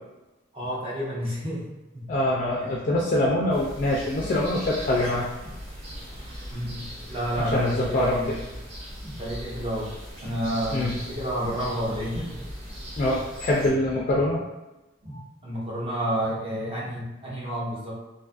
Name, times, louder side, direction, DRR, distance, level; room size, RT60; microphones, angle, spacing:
voice 1, 0.5-2.1 2.6-2.7 6.5-8.4 9.0-9.9 10.2-12.5 15.0-18.0, equal, 30° right, -5 dB, 0.6 m, -30 dB
voice 2, 2.1-5.3 7.4-8.2 10.7-10.9 13.0-14.4, left 1 dB, 40° left, -4 dB, 0.3 m, -24 dB
sound 1, 3.5-13.7, equal, 70° right, 1.2 m, -39 dB
2.5 x 2.4 x 2.4 m, 1.1 s
head